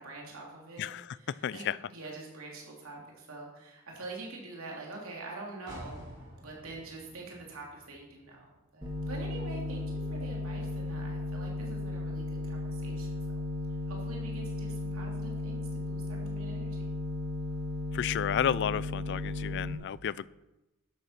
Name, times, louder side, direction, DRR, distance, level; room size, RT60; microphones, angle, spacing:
voice 1, 0.0-0.9 1.1-6.1 6.4-9.8 10.1-13.2 13.7-16.9, right 2 dB, 75° right, -1 dB, 3.1 m, -45 dB
voice 2, 0.8-1.2 1.4-1.8 17.9-20.3, left 9 dB, 55° left, 20 dB, 0.3 m, -32 dB
sound 1, 5.7-9.4 9.8-9.9, equal, 60° right, 3.7 m, -50 dB
sound 2, 8.8-19.7, left 3 dB, 25° right, 1.8 m, -35 dB
11.5 x 8.1 x 5.9 m, 1.0 s
head